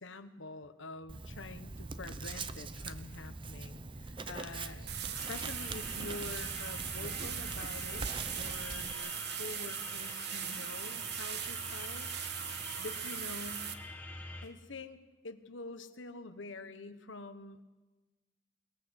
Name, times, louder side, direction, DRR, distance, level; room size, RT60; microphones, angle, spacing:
voice 1, 0.0-4.9 5.1-12.1 12.8-13.7 14.4-15.0 15.2-17.6, left 3 dB, 85° left, 10 dB, 1.2 m, -46 dB
Writing, 1.1-8.9, right 3 dB, 25° right, 0.7 m, -43 dB
sound 1, 4.9-13.7, right 9 dB, 60° right, 1.2 m, -39 dB
sound 2, 5.2-14.5, left 2 dB, 10° left, 1.8 m, -47 dB
21.5 x 21.0 x 6.6 m, 1.2 s
head